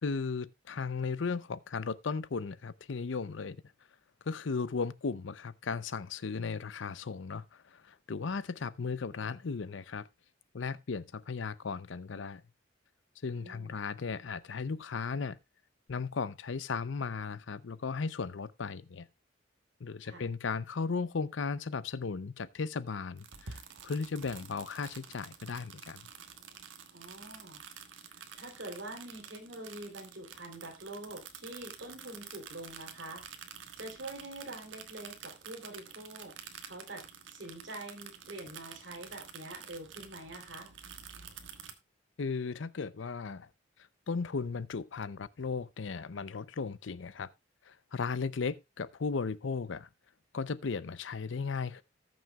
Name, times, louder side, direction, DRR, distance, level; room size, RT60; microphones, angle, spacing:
voice 1, 0.0-3.6 4.3-10.1 10.5-12.4 13.2-15.4 15.9-19.1 19.8-26.1 42.2-43.5 44.1-47.3 47.7-49.9 50.3-51.8, left 4 dB, 80° left, 0.6 m, -36 dB
voice 2, 13.3-13.8 20.0-20.2 26.9-27.6 28.1-37.0 37.3-40.7, right 1 dB, 70° right, 3.2 m, -45 dB
sound 1, 23.2-41.7, right 7 dB, 85° right, 1.4 m, -49 dB
19.0 x 6.3 x 2.3 m
head